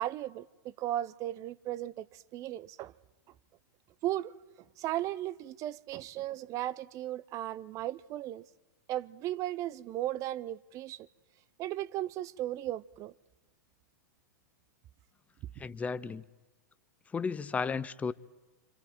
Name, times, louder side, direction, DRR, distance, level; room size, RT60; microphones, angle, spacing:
voice 1, 0.0-2.9 4.0-4.3 4.8-8.4 8.9-11.1 11.6-13.1, right 13 dB, 35° right, 0.6 m, -36 dB
voice 2, 15.6-16.2 17.1-18.1, left 5 dB, 15° left, 0.7 m, -33 dB
27.5 x 26.0 x 4.5 m
figure-of-eight pair, 100°, 10 cm